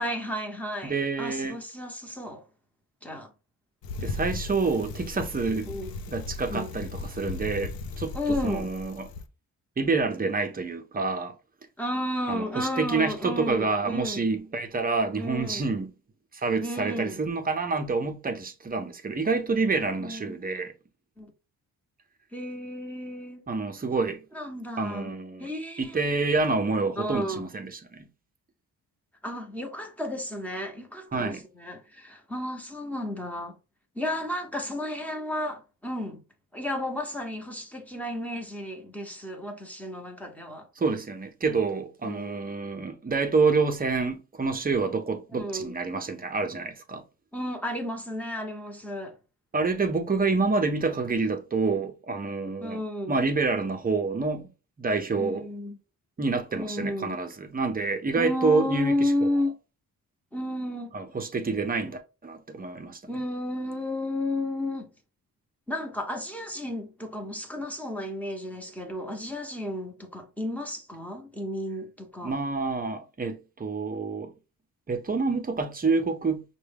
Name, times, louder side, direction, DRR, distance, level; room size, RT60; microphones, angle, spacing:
voice 1, 0.0-2.4 3.0-3.3 5.7-6.0 6.5-6.7 8.1-8.7 11.8-14.3 15.2-15.6 16.6-17.2 20.0-20.4 21.2-21.3 22.3-23.4 24.3-25.1 25.4-26.0 27.0-27.5 29.2-33.6 33.9-36.2 36.5-40.7 42.0-42.4 45.3-45.7 47.3-49.2 52.6-53.2 55.1-55.8 56.6-57.2 58.1-59.5 60.3-60.9 63.1-64.9 65.7-72.3, left 1 dB, 5° left, 0.9 m, -32 dB
voice 2, 0.8-1.6 4.0-5.7 6.1-9.1 9.8-11.3 12.3-15.9 16.3-20.7 23.5-24.2 24.8-25.5 25.8-28.1 31.1-31.4 40.8-47.0 49.5-52.8 53.1-54.5 54.8-55.4 56.2-59.3 60.9-63.0 72.2-74.3 74.9-76.4, right 4 dB, 25° right, 0.6 m, -28 dB
Bicycle, 3.8-9.3, left 3 dB, 75° left, 0.6 m, -36 dB
5.9 x 2.2 x 3.4 m
wide cardioid pair, 145°, 37 cm